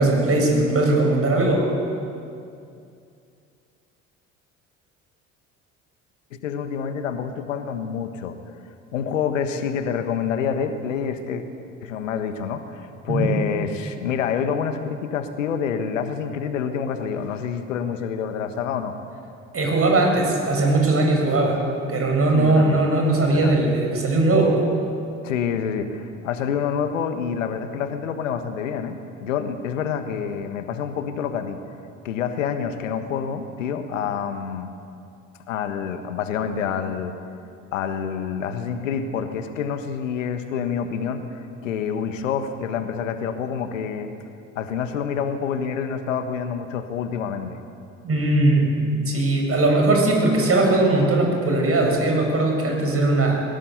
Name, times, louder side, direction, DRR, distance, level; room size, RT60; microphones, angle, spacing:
voice 1, 0.0-1.7 13.1-13.3 19.5-21.6 21.9-24.6 48.0-53.4, right 2 dB, 35° right, 1 dB, 8.0 m, -19 dB
voice 2, 6.3-8.4 8.9-11.4 11.8-19.0 22.3-22.9 23.3-23.6 25.2-31.6 32.0-34.7 35.5-37.2 37.7-44.1 44.5-47.6, left 7 dB, 85° left, 8 dB, 1.5 m, -27 dB
21.5 x 18.5 x 8.2 m, 2.5 s
hypercardioid pair, 60°, 38 cm